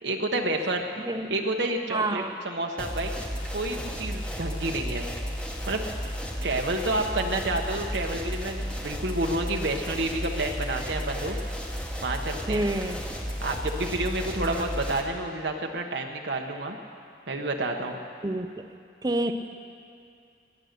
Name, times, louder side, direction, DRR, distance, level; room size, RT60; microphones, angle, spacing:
voice 1, 0.0-0.8 1.3-3.1 3.5-5.1 5.7-5.8 6.4-11.4 12.0-12.7 13.4-16.8 17.3-18.0, right 2 dB, 75° right, 2 dB, 1.2 m, -29 dB
voice 2, 1.0-1.3 1.9-2.3 12.5-13.0 14.4-14.7 18.2-18.6 19.0-19.3, right 2 dB, 20° right, 6 dB, 0.6 m, -28 dB
sound 1, 2.8-15.0, equal, 5° left, 1.2 m, -33 dB
21.0 x 9.4 x 6.7 m, 2.4 s
head